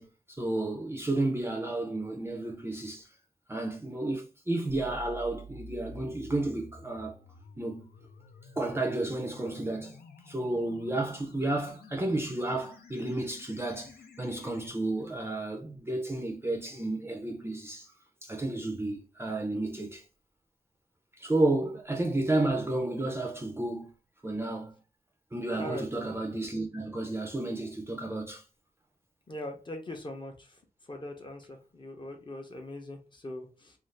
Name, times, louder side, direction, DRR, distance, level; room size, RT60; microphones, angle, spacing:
voice 1, 0.0-3.1 3.5-7.1 7.6-7.9 8.6-10.0 10.3-17.9 18.2-20.0 21.2-23.9 24.2-24.7 25.3-28.4, right 2 dB, 15° right, 0.5 m, -32 dB
sound 1, 4.7-14.7, left 2 dB, 75° left, 0.6 m, -50 dB
voice 2, 25.5-25.9 29.3-30.3 30.9-33.7, left 1 dB, 30° left, 0.7 m, -41 dB
2.5 x 2.4 x 3.1 m
wide cardioid pair, 130°, 16 cm